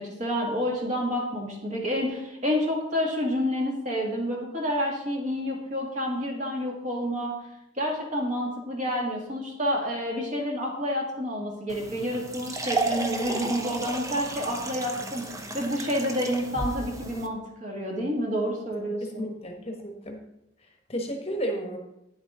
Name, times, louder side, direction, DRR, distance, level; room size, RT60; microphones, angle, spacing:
voice 1, 0.0-7.3 7.8-15.3 15.5-19.3, equal, 40° right, -1 dB, 2.1 m, -29 dB
sound 1, 11.7-17.3, right 2 dB, 15° right, 0.7 m, -33 dB
voice 2, 19.0-20.2 20.9-21.8, equal, 30° left, 3 dB, 1.1 m, -32 dB
9.5 x 7.9 x 3.7 m, 0.85 s
head